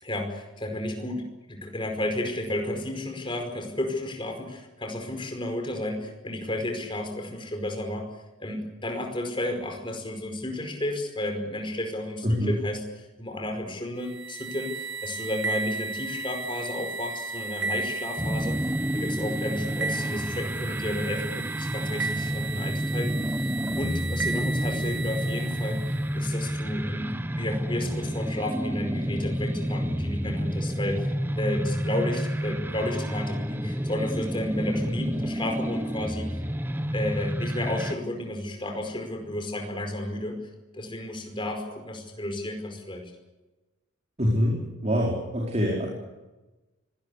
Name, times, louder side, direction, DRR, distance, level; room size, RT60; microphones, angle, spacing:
voice 1, 0.0-8.1 8.4-12.8 13.2-18.6 18.9-23.1 23.8-25.8 26.1-27.1 27.4-31.1 31.3-36.4 36.9-40.4 40.7-43.1, left 1 dB, 25° left, 4 dB, 5.1 m, -32 dB
voice 2, 12.2-12.6 44.2-45.9, equal, 30° right, -2 dB, 4.9 m, -25 dB
sound 1, 14.0-26.2, right 3 dB, 60° right, 1.7 m, -34 dB
sound 2, 18.2-37.9, equal, 10° right, 1.1 m, -30 dB
24.0 x 18.5 x 8.5 m, 1.1 s
head